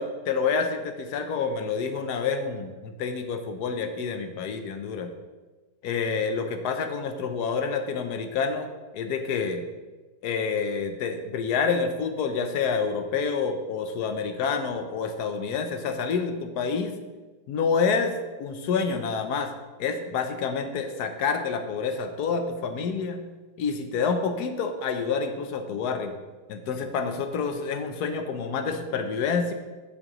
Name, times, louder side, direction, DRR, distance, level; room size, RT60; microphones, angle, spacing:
voice 1, 0.0-5.1 5.8-8.7 8.9-9.6 10.2-16.9 17.5-19.5 19.8-23.2 23.6-26.1 26.5-29.5, left 5 dB, 75° left, 7 dB, 1.3 m, -28 dB
10.0 x 7.7 x 3.0 m, 1.2 s
omnidirectional pair, 1.7 m